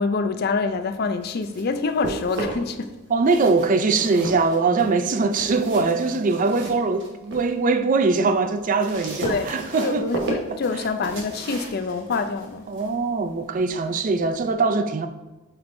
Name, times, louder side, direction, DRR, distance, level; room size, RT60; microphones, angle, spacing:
voice 1, 0.0-3.0 9.2-9.5 9.8-12.7, left 4 dB, 45° left, 0.4 m, -26 dB
sound 1, 1.0-2.8 3.2-7.5 7.9-14.5, right 2 dB, 60° right, 1.2 m, -35 dB
voice 2, 3.1-10.1 10.5-10.6 12.7-15.1, right 4 dB, 40° right, 0.4 m, -22 dB
8.4 x 4.4 x 2.6 m
head